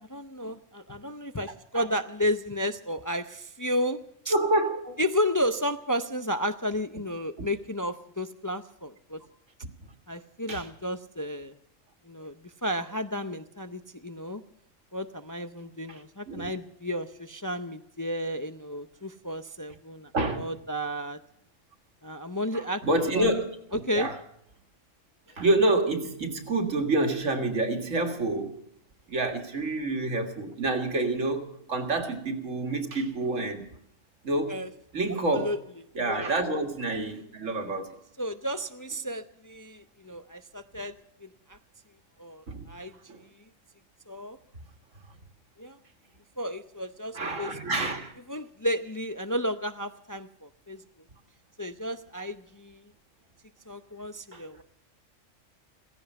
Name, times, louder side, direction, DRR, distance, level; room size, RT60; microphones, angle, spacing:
voice 1, 0.1-4.0 4.2-4.3 5.0-9.2 10.1-11.6 12.0-14.4 14.9-20.1 20.4-21.2 22.0-22.8 23.1-23.3 23.9-24.1 34.5-34.7 35.3-35.6 36.1-36.3 38.2-41.6 42.2-42.9 44.1-44.4 45.6-45.8 46.4-47.5 48.3-50.8 51.6-52.8 53.7-54.6, equal, 25° left, 0.4 m, -32 dB
voice 2, 4.3-5.0 7.4-7.5 10.5-10.7 15.9-16.5 20.1-20.5 22.5-24.2 25.4-28.6 29.1-33.7 34.2-34.6 34.9-35.6 36.0-38.0 42.5-42.7 43.1-43.2 47.1-48.1 54.3-54.4, right 2 dB, 75° right, 2.2 m, -28 dB
16.5 x 16.0 x 5.4 m
omnidirectional pair, 1.3 m